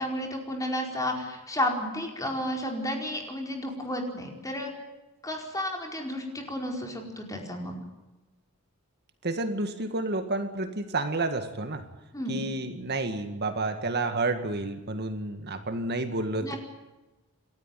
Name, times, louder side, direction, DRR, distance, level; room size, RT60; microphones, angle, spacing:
voice 1, 0.0-4.7 5.2-7.8 12.1-12.4 16.4-16.6, left 1 dB, 15° left, 2 dB, 4.7 m, -32 dB
voice 2, 9.2-11.8 12.3-16.5, right 2 dB, 50° right, 7 dB, 1.9 m, -30 dB
29.0 x 13.5 x 9.1 m, 1.1 s
head